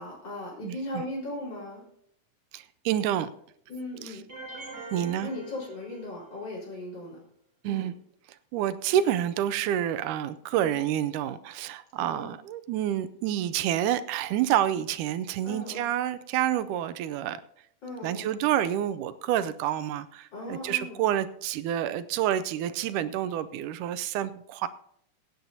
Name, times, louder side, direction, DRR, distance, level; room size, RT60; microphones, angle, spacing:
voice 1, 0.0-1.8 3.7-4.2 4.9-7.2 7.6-7.9 10.5-10.8 12.0-12.3 15.4-15.9 17.8-18.3 20.3-21.0, left 2 dB, 50° left, -4 dB, 5.5 m, -38 dB
voice 2, 2.5-3.3 4.0-4.2 4.9-5.3 7.6-7.9 8.5-17.4 18.0-24.7, right 11 dB, 85° right, 13 dB, 2.1 m, -28 dB
sound 1, 4.3-6.4, right 2 dB, 45° right, 4.0 m, -44 dB
23.0 x 9.3 x 2.7 m, 0.70 s
omnidirectional pair, 3.6 m